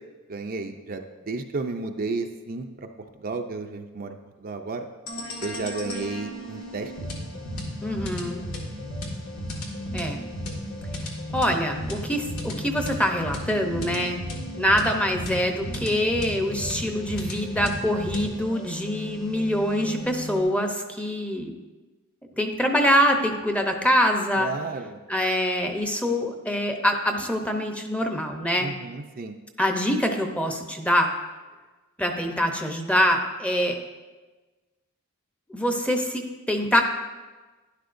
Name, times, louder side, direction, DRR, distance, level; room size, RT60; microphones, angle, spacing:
voice 1, 0.3-2.9 3.1-4.9 5.4-6.9 24.4-25.0 28.6-29.4, right 3 dB, 45° right, 5 dB, 0.5 m, -32 dB
sound 1, 5.1-20.4, equal, 80° left, 1.7 m, -34 dB
voice 2, 7.8-8.4 9.9-10.2 11.3-14.2 14.6-21.5 22.4-24.5 25.1-28.7 29.6-31.1 32.0-33.8 35.5-36.8, equal, 5° left, 3 dB, 0.7 m, -24 dB
11.5 x 10.5 x 2.6 m, 1.3 s
head